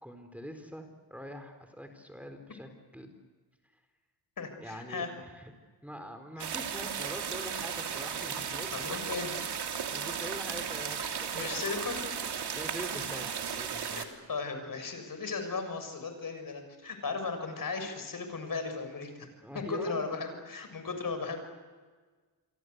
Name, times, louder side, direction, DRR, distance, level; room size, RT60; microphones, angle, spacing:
voice 1, 0.0-3.1 4.6-5.5 5.8-9.2 9.9-11.7 12.5-14.0 19.4-20.0, equal, 5° right, 6 dB, 4.3 m, -44 dB
voice 2, 4.4-5.1 6.4-6.5 8.7-9.3 11.3-12.0 13.1-13.2 13.9-19.1 19.5-21.4, left 4 dB, 50° left, 7 dB, 6.8 m, -36 dB
sound 1, 6.4-14.0, right 7 dB, 65° right, 3.0 m, -35 dB
28.5 x 23.5 x 8.2 m, 1.4 s
cardioid pair, 65°, 43 cm